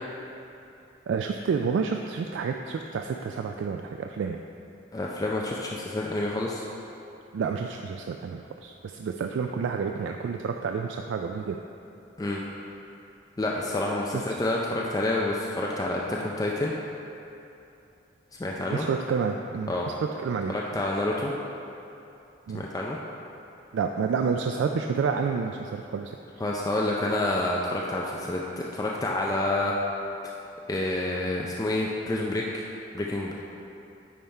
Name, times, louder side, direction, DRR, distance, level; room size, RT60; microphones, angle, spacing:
voice 1, 1.1-4.4 7.3-11.6 14.3-14.4 18.7-20.5 22.5-22.6 23.7-26.2, right 5 dB, 85° right, 4 dB, 0.3 m, -29 dB
voice 2, 4.9-6.6 12.2-12.4 13.4-16.7 18.4-18.9 19.7-19.9 20.5-21.3 22.5-23.0 26.4-29.7 30.7-32.6 32.9-33.3, left 2 dB, 20° left, -3 dB, 0.4 m, -28 dB
9.3 x 3.6 x 4.3 m, 2.8 s
head